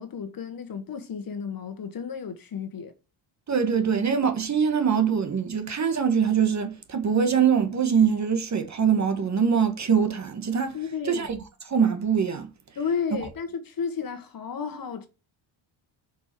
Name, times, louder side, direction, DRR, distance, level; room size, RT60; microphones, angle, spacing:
voice 1, 0.0-2.9 10.7-11.3 12.7-15.1, left 6 dB, 45° left, 1.6 m, -32 dB
voice 2, 3.5-10.8 11.0-11.4 11.6-12.5, right 7 dB, 35° right, 1.5 m, -23 dB
7.3 x 5.6 x 7.6 m
wide cardioid pair, 175°, 50 cm